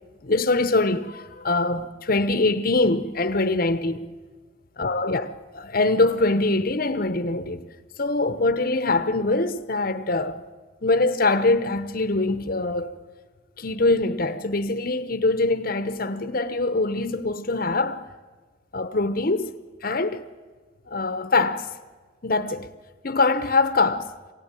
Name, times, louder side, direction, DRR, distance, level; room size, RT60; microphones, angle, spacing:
voice 1, 0.2-4.0 4.8-7.7 8.0-10.4 10.8-12.9 13.6-18.1 18.7-19.5 19.8-20.2 20.9-21.7 22.2-22.7 23.0-24.1, left 2 dB, 45° left, 0.8 m, -23 dB
24.0 x 17.5 x 9.0 m
head